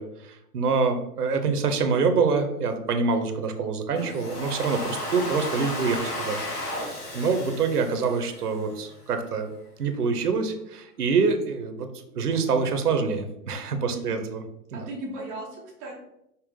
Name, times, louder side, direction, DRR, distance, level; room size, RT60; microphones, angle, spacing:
voice 1, 0.0-6.4 6.7-9.5 9.8-11.9 12.2-14.4 14.7-14.8, right 5 dB, 75° right, 7 dB, 0.8 m, -26 dB
Domestic sounds home sounds, 4.0-8.9, left 1 dB, 75° left, 1.4 m, -34 dB
voice 2, 13.9-14.3 14.7-15.9, right 2 dB, 15° right, -4 dB, 0.3 m, -37 dB
5.4 x 2.1 x 3.9 m, 0.82 s
figure-of-eight pair, 105°, 47 cm